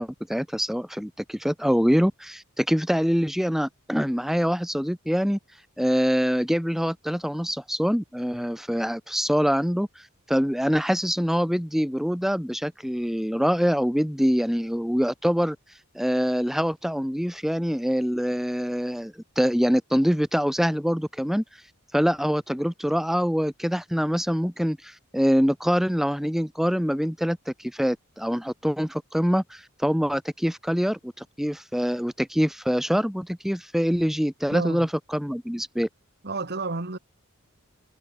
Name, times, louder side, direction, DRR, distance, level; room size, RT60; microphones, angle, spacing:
voice 1, 0.0-5.4 5.8-15.6 15.9-21.4 21.9-35.9, equal, ahead, 2.0 m, -25 dB
voice 2, 34.5-34.9 36.2-37.0, right 3 dB, 50° right, 2.4 m, -30 dB
head